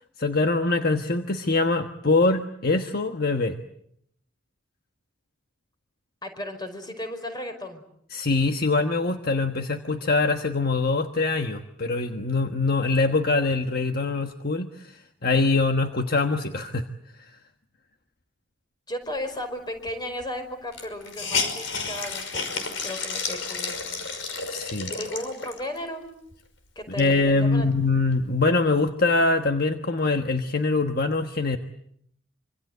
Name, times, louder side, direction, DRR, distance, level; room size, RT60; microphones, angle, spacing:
voice 1, 0.2-3.6 8.1-16.8 24.5-24.9 27.0-31.6, left 3 dB, 50° left, 5 dB, 1.4 m, -23 dB
voice 2, 6.2-7.8 18.9-23.9 24.9-26.0 26.8-27.7, left 1 dB, 20° left, 7 dB, 5.1 m, -35 dB
Hiss, 19.9-20.0 20.2-20.3 20.7-25.8 26.3-26.4 26.8-28.2, left 4 dB, 70° left, 5.6 m, -32 dB
26.5 x 26.0 x 8.0 m, 0.70 s
head